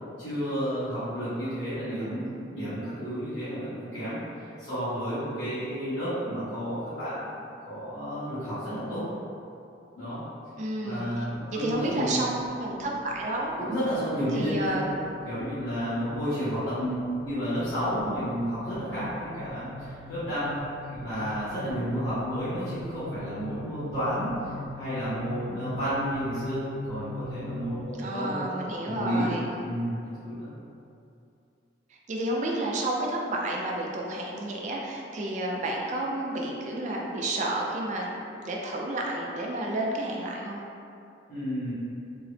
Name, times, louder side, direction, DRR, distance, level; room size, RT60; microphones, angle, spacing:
voice 1, 0.2-7.3 7.6-9.0 9.9-10.2 10.8-12.2 12.8-12.9 13.6-14.8 15.2-20.5 20.9-28.5 28.9-29.3 29.6-30.5 41.3-41.7, equal, 90° left, -16 dB, 1.2 m, -31 dB
voice 2, 10.6-12.3 12.6-13.5 14.3-15.0 28.0-29.5 31.9-40.6, right 1 dB, 40° right, -2 dB, 0.4 m, -31 dB
sound 1, 12.6-27.8, left 1 dB, 60° left, 0.7 m, -42 dB
3.7 x 2.0 x 3.2 m, 2.6 s
head